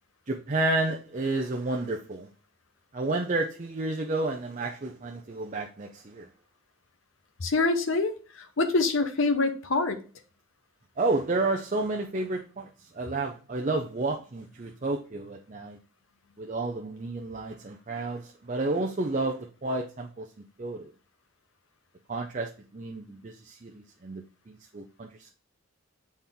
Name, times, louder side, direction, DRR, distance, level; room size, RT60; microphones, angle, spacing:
voice 1, 0.3-2.3 2.9-6.3 11.0-12.7 12.9-15.8 16.4-20.3 20.6-20.9 22.1-25.3, right 2 dB, 35° right, 0.5 m, -31 dB
voice 2, 7.4-10.0, left 3 dB, 60° left, 0.8 m, -25 dB
7.5 x 4.3 x 3.6 m
head